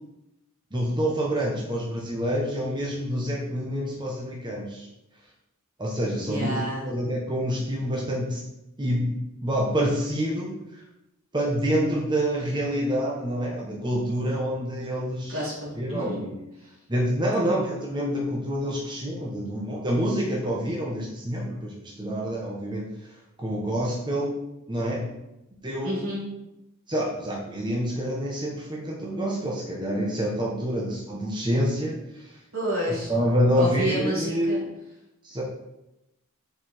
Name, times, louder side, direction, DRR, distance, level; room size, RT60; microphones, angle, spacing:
voice 1, 0.7-4.9 5.8-8.4 8.8-9.1 9.4-10.8 11.3-15.4 15.8-16.4 16.9-22.9 23.4-24.3 24.7-25.1 25.6-26.0 26.9-32.4 33.1-34.7 35.2-35.4, equal, 20° right, -3 dB, 1.3 m, -27 dB
voice 2, 6.1-6.9 15.3-16.2 16.6-16.7 17.4-17.6 25.8-26.2 32.5-33.1 33.5-34.6, right 1 dB, 65° right, -4 dB, 3.0 m, -30 dB
6.4 x 5.4 x 6.2 m, 0.90 s
head